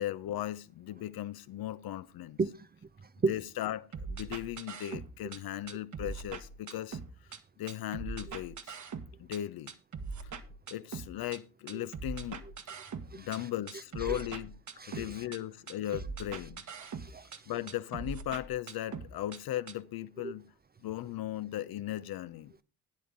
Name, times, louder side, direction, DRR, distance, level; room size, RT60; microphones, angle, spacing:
voice 1, 0.0-2.4 3.3-7.0 7.6-8.8 9.2-9.7 10.2-10.3 10.7-12.4 13.1-14.5 14.9-16.6 17.5-20.5 20.8-22.5, left 13 dB, 50° left, 0.8 m, -37 dB
voice 2, 3.0-3.3 11.7-11.9 13.1-13.5 14.0-14.2 14.8-15.3 15.9-16.0 16.8-17.5 20.2-20.3, right 4 dB, 20° right, 0.7 m, -35 dB
sound 1, 3.9-5.4 5.7-7.4 7.7-9.4 9.7-11.4 11.7-13.4 13.7-15.4 15.7-17.4 17.7-19.4 19.7-19.8, right 5 dB, 40° right, 1.5 m, -41 dB
11.5 x 10.0 x 3.8 m
hypercardioid pair, 50°, 46 cm